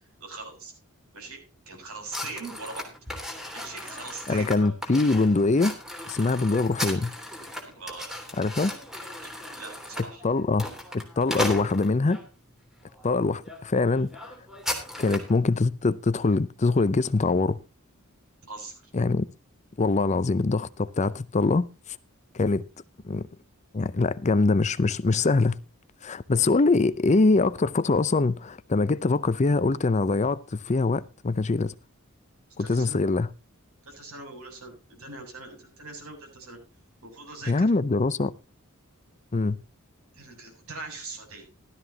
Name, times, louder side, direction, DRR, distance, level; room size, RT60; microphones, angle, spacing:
voice 1, 0.2-0.7 1.1-1.4 1.7-2.9 3.5-4.5 7.8-8.1 9.2-10.2 18.5-18.8 32.6-33.0 33.8-36.6 37.0-37.7 40.1-41.5, right 3 dB, 75° right, 7.3 m, -41 dB
sound 1, 2.1-12.2 12.9-13.1 13.4-13.6 13.9-15.4, left 1 dB, ahead, 3.1 m, -36 dB
voice 2, 4.3-5.7 6.1-7.1 8.4-8.7 10.2-10.7 10.9-12.2 13.0-14.3 15.0-17.6 18.9-19.3 19.8-22.0 22.3-22.6 23.0-23.2 23.7-25.6 26.0-31.7 32.6-33.3 37.5-38.3 39.3-39.6, left 3 dB, 30° left, 0.5 m, -23 dB
16.0 x 13.0 x 2.8 m
head